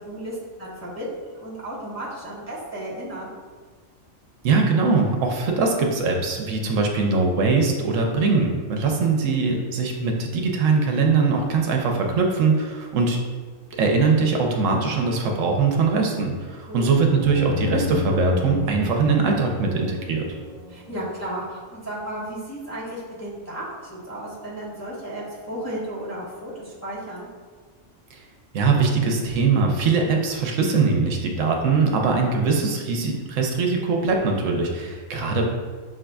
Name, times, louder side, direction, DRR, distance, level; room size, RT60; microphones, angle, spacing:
voice 1, 0.0-3.3 16.7-17.0 20.7-23.6 23.9-27.3, right 1 dB, 15° left, -8 dB, 0.8 m, -34 dB
voice 2, 4.4-13.2 13.7-20.2 28.1-28.2 28.5-35.5, right 4 dB, 75° right, 1 dB, 1.0 m, -21 dB
sound 1, 17.0-21.6, left 6 dB, 55° left, 0.6 m, -32 dB
5.8 x 3.7 x 2.3 m, 1.5 s
omnidirectional pair, 1.3 m